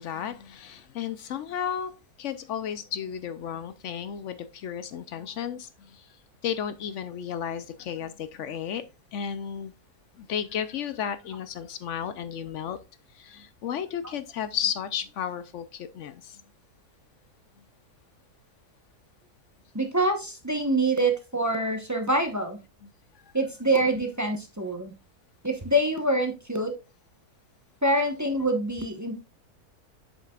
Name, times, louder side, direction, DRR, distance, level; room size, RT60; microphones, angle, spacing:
voice 1, 0.0-6.1 6.4-8.8 9.1-9.7 10.2-12.8 13.1-16.4 22.8-22.9, left 8 dB, 65° left, 0.8 m, -33 dB
voice 2, 19.7-22.6 23.3-24.9 25.4-26.7 27.8-29.2, right 1 dB, 15° right, 0.8 m, -25 dB
7.5 x 6.6 x 2.3 m
omnidirectional pair, 1.6 m